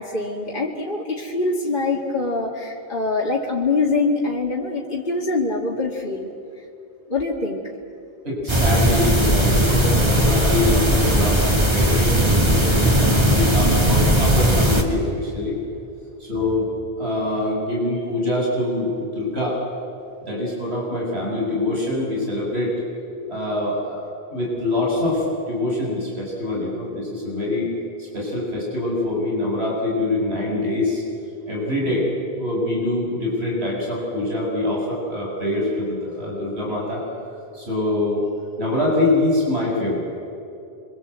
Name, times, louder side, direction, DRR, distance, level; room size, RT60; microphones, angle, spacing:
voice 1, 0.0-6.3 7.1-7.6, left 3 dB, 50° left, -3 dB, 2.3 m, -24 dB
voice 2, 8.2-15.6 16.2-19.6 20.3-22.8 23.3-27.7 28.0-31.0 31.5-32.1 32.4-37.0 37.5-38.2 38.6-40.0, left 2 dB, 85° right, -4 dB, 7.1 m, -24 dB
sound 1, 8.5-14.8, equal, 25° right, 2.4 m, -18 dB
27.0 x 24.5 x 8.1 m, 2.7 s
omnidirectional pair, 1.1 m